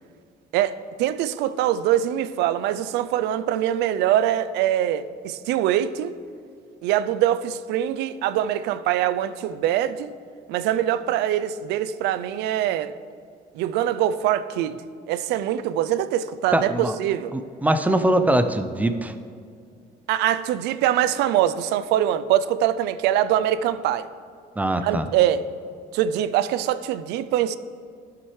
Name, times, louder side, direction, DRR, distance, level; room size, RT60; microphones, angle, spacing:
voice 1, 0.5-6.1 6.8-10.1 10.5-12.9 13.5-14.8 15.1-17.3 20.1-24.1 24.8-25.5 25.9-27.6, right 11 dB, 85° right, 0.4 m, -23 dB
voice 2, 16.5-17.0 17.3-19.1 24.6-25.1, right 1 dB, 10° right, 0.5 m, -22 dB
12.5 x 5.8 x 3.2 m
cardioid pair, 110°, 17 cm